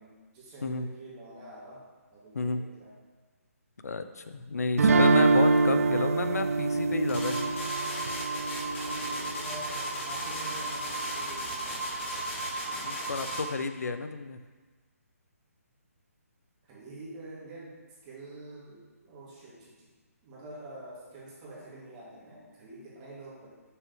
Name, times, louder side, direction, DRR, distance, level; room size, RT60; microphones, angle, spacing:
voice 1, 0.0-2.9 8.8-11.9 16.6-19.9 20.2-23.5, right 1 dB, 25° right, -7 dB, 2.2 m, -47 dB
voice 2, 3.8-7.7 12.7-14.4, left 3 dB, 85° left, 9 dB, 0.6 m, -31 dB
sound 1, 4.8-9.7, right 3 dB, 65° right, 0.4 m, -25 dB
sound 2, 7.1-13.5, right 1 dB, 50° left, 1.9 m, -34 dB
6.3 x 6.1 x 3.5 m, 1.3 s
hypercardioid pair, 160°, 8 cm